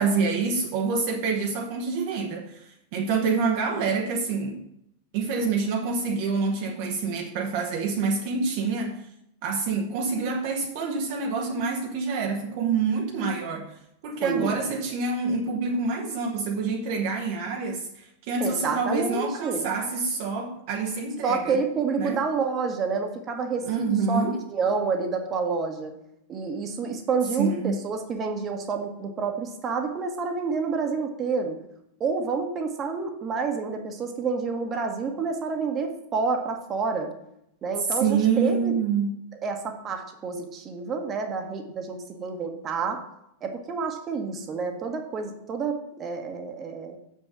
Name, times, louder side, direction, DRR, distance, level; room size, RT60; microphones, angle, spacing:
voice 1, 0.0-4.6 5.1-9.0 9.4-13.7 14.0-21.5 22.0-22.2 23.6-24.4 27.4-27.8 38.0-39.2, right 4 dB, 50° right, 2 dB, 1.0 m, -27 dB
voice 2, 14.2-14.6 18.4-19.7 21.2-24.2 24.5-25.9 26.3-31.6 32.0-37.1 37.6-38.8 39.4-43.0 43.4-47.0, right 5 dB, 25° right, 5 dB, 1.2 m, -28 dB
6.9 x 5.6 x 6.1 m, 0.77 s
figure-of-eight pair, 90°, 0 cm